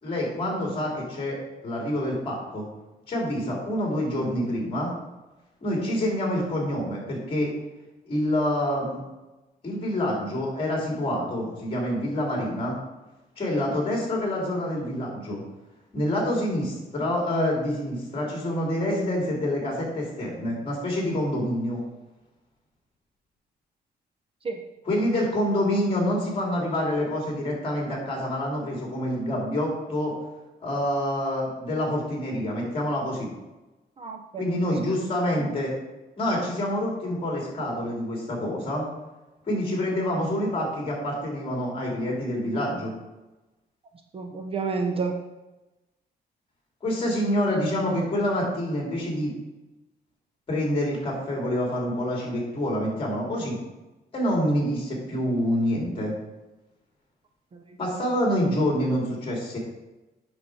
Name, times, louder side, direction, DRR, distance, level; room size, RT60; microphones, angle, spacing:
voice 1, 0.0-2.7 3.1-4.9 5.6-7.5 8.0-9.0 9.6-12.8 13.4-15.4 15.9-21.8 24.8-30.1 30.6-33.3 34.4-35.7 36.2-38.8 39.5-42.9 46.8-49.3 50.5-53.6 54.1-56.1 57.8-59.6, left 1 dB, 30° left, -1 dB, 2.9 m, -27 dB
voice 2, 34.0-34.6 44.1-45.1 57.5-57.8, right 4 dB, 35° right, 4 dB, 0.6 m, -30 dB
8.5 x 6.3 x 4.7 m, 1.1 s
wide cardioid pair, 170°, 17 cm